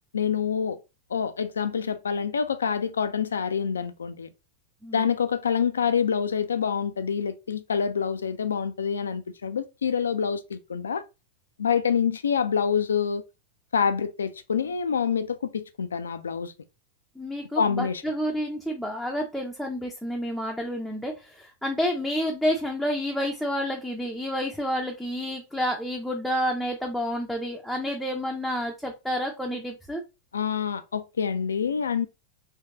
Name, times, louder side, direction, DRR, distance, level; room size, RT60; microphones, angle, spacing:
voice 1, 0.1-0.8 1.1-4.3 4.9-11.0 11.6-13.2 13.7-16.5 17.6-18.0 30.3-32.1, left 7 dB, 70° left, 0.4 m, -26 dB
voice 2, 17.2-30.0, equal, ahead, 0.6 m, -29 dB
3.4 x 3.1 x 2.7 m
figure-of-eight pair, 90°, 0 cm